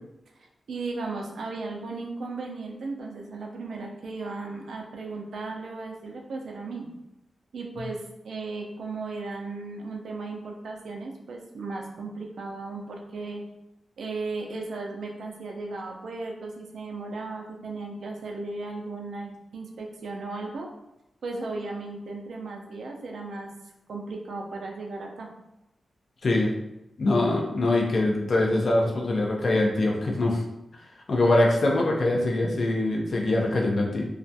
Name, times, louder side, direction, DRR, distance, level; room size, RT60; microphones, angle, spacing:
voice 1, 0.4-6.9 7.5-13.4 14.0-20.7 21.2-23.5 23.9-25.3, right 3 dB, 85° right, 1 dB, 0.4 m, -36 dB
voice 2, 27.0-30.4 31.1-34.1, left 2 dB, 55° left, 0 dB, 0.4 m, -23 dB
2.3 x 2.1 x 2.6 m, 0.89 s
wide cardioid pair, 115°, 0 cm